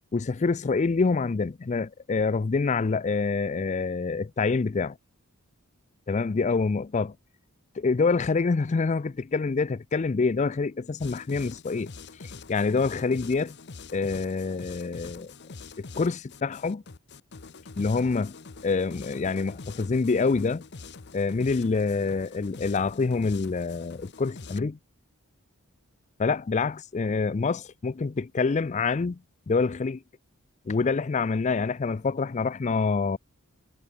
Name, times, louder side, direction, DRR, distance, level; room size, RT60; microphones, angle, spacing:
voice 1, 0.1-5.0 6.1-7.2 7.8-11.9 12.5-13.6 13.9-15.3 16.0-16.8 17.8-18.4 18.6-20.7 21.1-24.8 26.2-29.2 29.5-30.0 30.7-33.2, left 4 dB, 30° left, 0.4 m, -26 dB
sound 1, 11.0-24.6, left 4 dB, 50° left, 0.9 m, -45 dB
head